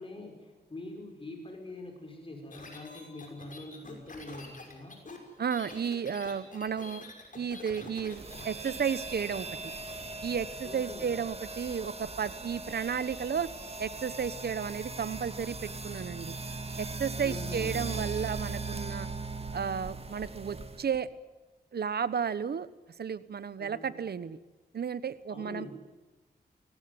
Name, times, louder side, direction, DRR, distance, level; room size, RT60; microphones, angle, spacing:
voice 1, 0.0-5.0 10.6-11.1 17.2-17.8 23.6-23.9 25.3-25.7, left 2 dB, 30° left, 2 dB, 5.4 m, -44 dB
sound 1, 2.5-9.0, left 3 dB, 50° left, 6.0 m, -46 dB
voice 2, 5.4-7.0 7.3-9.5 10.2-13.5 13.8-16.4 16.8-19.1 19.5-21.1 21.7-22.7 23.0-24.4 24.7-25.7, right 7 dB, 65° right, 16 dB, 1.1 m, -33 dB
sound 2, 8.1-21.0, right 3 dB, 35° right, 2.2 m, -39 dB
23.0 x 18.0 x 9.7 m, 1.2 s
cardioid pair, 80°, 18 cm